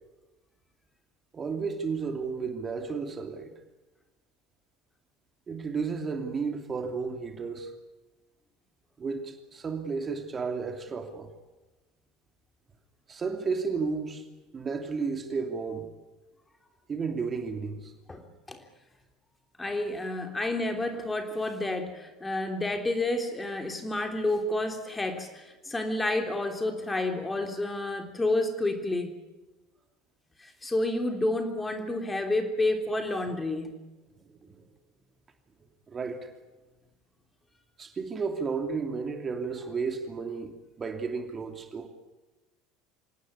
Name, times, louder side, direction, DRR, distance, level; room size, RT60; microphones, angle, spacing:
voice 1, 1.3-3.5 5.5-7.7 9.0-11.3 13.1-14.2 14.5-15.9 16.9-17.9 34.2-34.6 35.9-36.3 37.8-40.5 40.8-41.9, right 5 dB, 30° right, 6 dB, 2.9 m, -33 dB
voice 2, 19.6-29.2 30.4-33.7, left 2 dB, 15° left, 5 dB, 3.4 m, -30 dB
26.0 x 18.0 x 9.8 m, 1.1 s
figure-of-eight pair, 70°, 0 cm